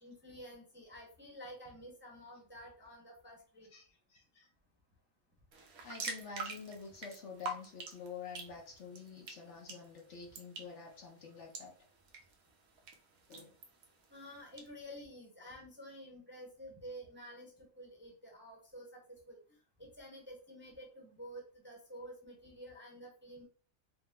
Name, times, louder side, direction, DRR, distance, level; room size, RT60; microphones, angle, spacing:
voice 1, 0.0-3.7 14.1-19.4 19.8-23.4, equal, 10° right, -1 dB, 0.9 m, -50 dB
voice 2, 3.7-4.5 5.8-11.7 13.3-13.6, left 5 dB, 60° left, 0 dB, 1.1 m, -48 dB
sound 1, 5.5-14.7, right 3 dB, 80° right, 1.3 m, -48 dB
4.8 x 2.2 x 3.6 m, 0.41 s
omnidirectional pair, 1.5 m